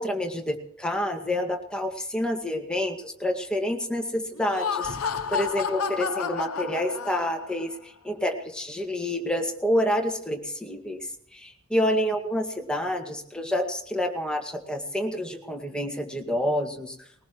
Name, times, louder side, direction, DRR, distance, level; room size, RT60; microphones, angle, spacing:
voice 1, 0.0-17.1, left 1 dB, 5° left, 3 dB, 1.9 m, -28 dB
Laughter, 4.4-7.6, left 6 dB, 90° left, 1.0 m, -30 dB
21.0 x 19.5 x 3.1 m, 0.70 s
head